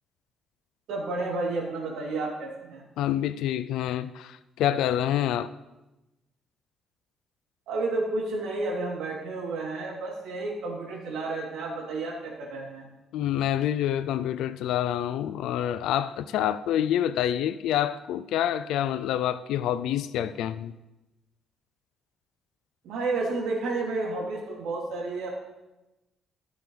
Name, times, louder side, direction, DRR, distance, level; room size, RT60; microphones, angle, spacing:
voice 1, 0.9-2.8 7.7-12.9 22.8-25.3, right 3 dB, 85° right, -3 dB, 3.2 m, -31 dB
voice 2, 3.0-5.5 13.1-20.7, left 11 dB, 85° left, 14 dB, 0.4 m, -27 dB
15.0 x 7.1 x 3.4 m, 1.0 s
cardioid pair, 140°, 0 cm